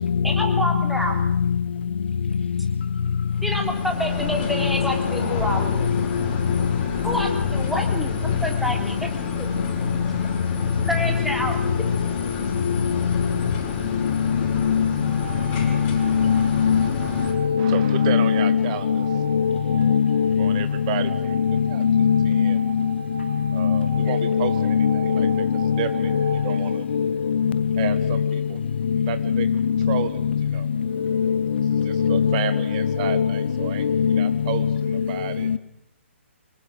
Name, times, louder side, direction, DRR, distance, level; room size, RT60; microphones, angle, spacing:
voice 1, 0.2-1.1 3.4-5.9 7.0-9.0 9.4-9.5 10.8-11.7, equal, ahead, 3.4 m, -28 dB
sound 1, 3.3-17.3, left 5 dB, 25° left, 5.2 m, -32 dB
voice 2, 14.3-14.9 15.6-16.9 17.3-20.6 21.4-22.6 23.6-25.8 26.1-26.4 26.9-28.0 28.9-30.0 31.0-32.4 33.0-33.3 33.8-34.3 35.5-35.6, left 7 dB, 55° left, 1.3 m, -21 dB
sound 2, 15.0-26.7, right 7 dB, 55° right, 4.3 m, -39 dB
voice 3, 17.6-19.1 20.4-21.4 21.7-21.8 22.3-22.6 23.5-25.4 25.8-26.1 26.4-26.9 27.8-28.6 29.1-29.5 29.9-30.1 30.5-30.7 31.8-33.9 34.1-35.5, right 10 dB, 35° right, 1.3 m, -31 dB
25.0 x 20.0 x 7.9 m
figure-of-eight pair, 130°, 7 cm